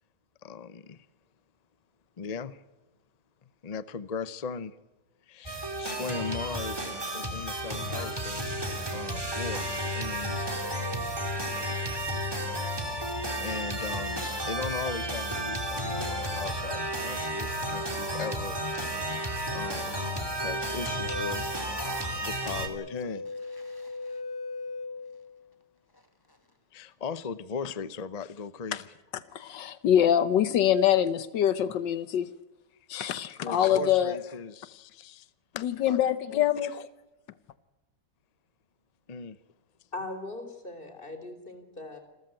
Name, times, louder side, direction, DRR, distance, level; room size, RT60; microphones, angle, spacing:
voice 1, 0.4-1.1 2.2-2.6 3.6-4.8 5.3-8.6 8.9-10.7 13.3-18.9 19.5-21.5 22.0-23.3 26.7-28.9 33.1-35.3 35.5-36.0 36.3-36.9 39.1-39.4, left 5 dB, 50° left, 0.4 m, -38 dB
sound 1, 5.4-22.7, right 1 dB, 15° right, 2.7 m, -32 dB
sound 2, 20.7-25.5 25.9-26.3, left 2 dB, 15° left, 1.7 m, -40 dB
voice 2, 29.3-32.3 32.9-34.2 35.6-36.7, left 10 dB, 85° left, 1.6 m, -24 dB
voice 3, 39.9-42.0, left 2 dB, 30° left, 4.0 m, -39 dB
28.0 x 14.0 x 9.0 m
omnidirectional pair, 1.9 m